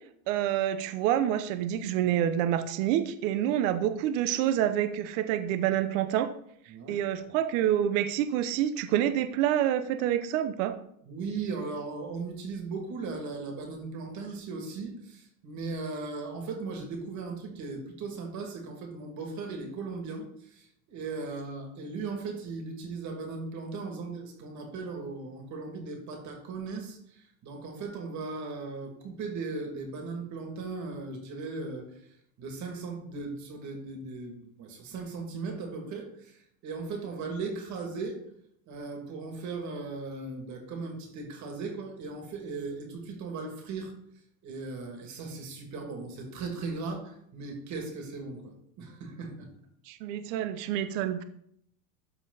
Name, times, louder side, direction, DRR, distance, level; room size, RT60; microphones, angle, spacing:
voice 1, 0.3-6.3 6.9-10.7 49.9-51.2, right 11 dB, 60° right, 10 dB, 0.9 m, -27 dB
voice 2, 6.7-7.0 11.0-31.9 32.4-38.2 38.7-43.9 44.4-49.5, right 4 dB, 40° right, 3 dB, 2.6 m, -37 dB
13.0 x 4.5 x 4.1 m, 0.70 s
supercardioid pair, 145°, 43 cm